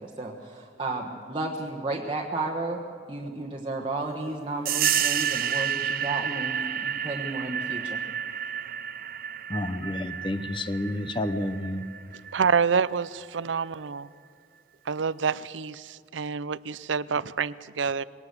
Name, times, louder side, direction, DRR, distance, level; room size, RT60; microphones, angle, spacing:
voice 1, 0.0-2.8 3.1-8.0, right 2 dB, 25° right, 0 dB, 1.3 m, -33 dB
sound 1, 4.7-12.9, right 9 dB, 50° right, 0.8 m, -30 dB
voice 2, 9.5-11.8, left 1 dB, 25° left, 11 dB, 0.8 m, -30 dB
voice 3, 12.3-14.1 14.9-18.0, right 6 dB, 85° right, 19 dB, 0.6 m, -27 dB
21.0 x 18.0 x 8.2 m, 2.3 s
head